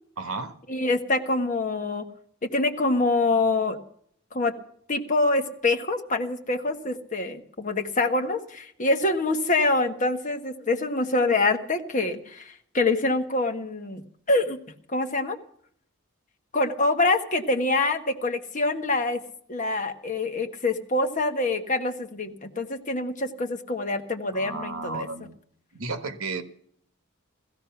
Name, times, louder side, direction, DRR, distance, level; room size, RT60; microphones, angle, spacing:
voice 1, 0.2-0.6 24.3-25.3 25.7-26.4, right 3 dB, 85° right, 9 dB, 1.5 m, -33 dB
voice 2, 0.7-2.0 2.5-3.8 4.3-4.5 4.9-14.0 14.3-14.6 14.9-15.4 16.5-19.2 19.5-25.1, left 2 dB, 35° left, 5 dB, 1.4 m, -25 dB
16.0 x 14.5 x 5.9 m, 0.64 s
head